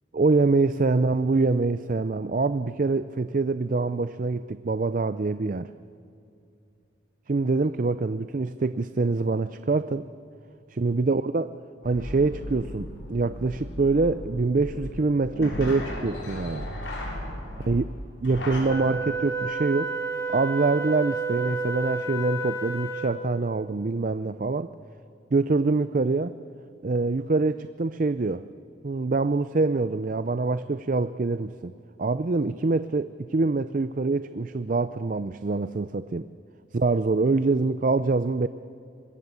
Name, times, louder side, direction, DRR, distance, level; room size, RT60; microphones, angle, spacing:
voice 1, 0.1-5.7 7.3-10.1 10.7-11.5 11.8-16.7 17.6-17.9 18.2-19.9 20.3-24.7 25.3-26.3 26.8-28.4 28.8-31.7 32.0-36.3 36.7-38.5, right 3 dB, 45° right, 12 dB, 0.5 m, -25 dB
sound 1, 11.8-18.6, left 1 dB, 80° left, 5.9 m, -36 dB
Wind instrument woodwind instrument, 18.7-23.3, right 3 dB, 15° left, 1.5 m, -30 dB
24.5 x 20.5 x 8.2 m, 2.5 s
head